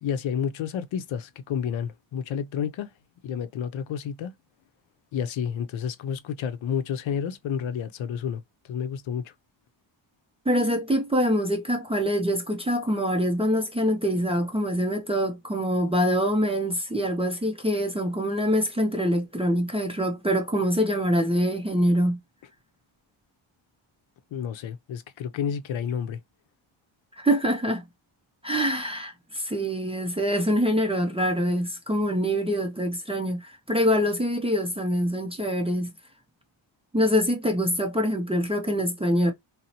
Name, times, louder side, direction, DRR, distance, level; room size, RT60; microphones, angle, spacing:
voice 1, 0.0-2.9 3.2-4.3 5.1-8.4 8.7-9.3 24.3-26.2, left 8 dB, 75° left, 0.6 m, -30 dB
voice 2, 10.5-22.2 27.1-27.8 28.4-35.9 36.9-39.3, equal, 15° right, 0.4 m, -25 dB
4.0 x 2.0 x 2.7 m
wide cardioid pair, 180°, 47 cm